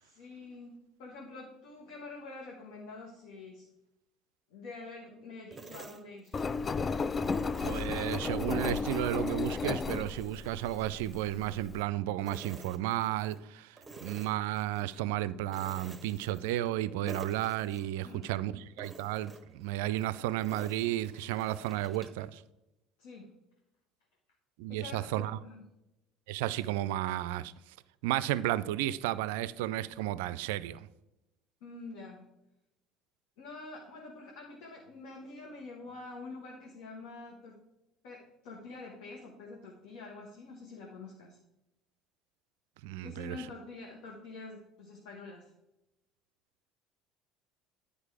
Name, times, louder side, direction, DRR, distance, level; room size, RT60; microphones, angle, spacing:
voice 1, 0.0-3.7 4.5-6.3 18.0-18.3 23.0-23.3 24.7-25.6 31.6-32.3 33.4-37.6 38.0-41.4 43.0-45.5, left 3 dB, 70° left, 1.4 m, -46 dB
sound 1, 5.5-6.8 7.2-8.8 9.2-11.9 12.2-13.4 13.8-15.0 15.5-16.8 17.1-18.4 18.8-22.3, right 3 dB, 15° right, 1.0 m, -51 dB
Engine, 6.3-11.8, left 4 dB, 30° left, 0.4 m, -34 dB
voice 2, 7.6-22.4 24.6-25.4 26.3-27.8 28.0-30.9 42.8-43.5, right 14 dB, 70° right, 0.3 m, -33 dB
9.9 x 5.0 x 4.8 m
hypercardioid pair, 60°, 0 cm